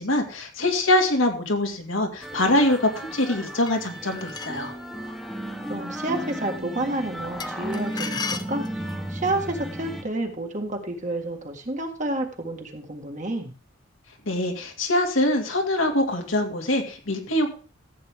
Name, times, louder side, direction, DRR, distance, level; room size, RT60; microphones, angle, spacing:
voice 1, 0.0-4.7 14.3-17.5, left 1 dB, 80° left, 3 dB, 2.2 m, -23 dB
sound 1, 2.2-10.0, right 1 dB, ahead, 1.3 m, -34 dB
sound 2, 3.7-4.7 7.4-9.1, left 5 dB, 20° left, 0.6 m, -35 dB
voice 2, 5.7-8.7 9.1-13.5, right 2 dB, 35° right, 3 dB, 1.8 m, -30 dB
14.5 x 8.1 x 3.6 m, 0.36 s
head